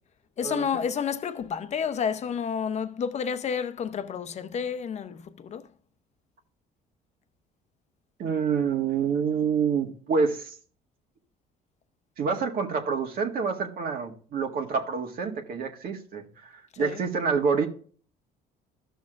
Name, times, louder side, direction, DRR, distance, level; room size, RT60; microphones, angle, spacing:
voice 1, 0.4-5.7 16.7-17.0, left 7 dB, 40° left, 0.7 m, -30 dB
voice 2, 8.2-10.5 12.2-17.7, right 5 dB, 60° right, 1.7 m, -27 dB
14.0 x 6.3 x 2.5 m
cardioid pair, 110°, 17 cm